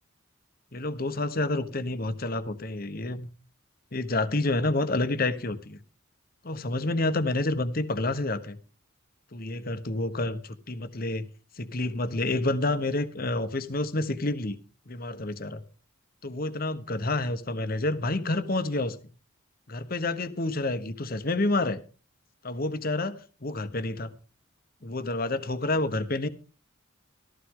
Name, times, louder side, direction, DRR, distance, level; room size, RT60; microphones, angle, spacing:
voice 1, 0.7-3.3 3.9-5.8 6.4-8.6 9.3-11.3 11.6-14.6 14.9-15.6 16.2-19.0 19.7-21.8 22.4-24.1 24.8-26.3, left 2 dB, 45° left, 12 dB, 1.1 m, -29 dB
15.0 x 14.0 x 3.8 m, 0.35 s
head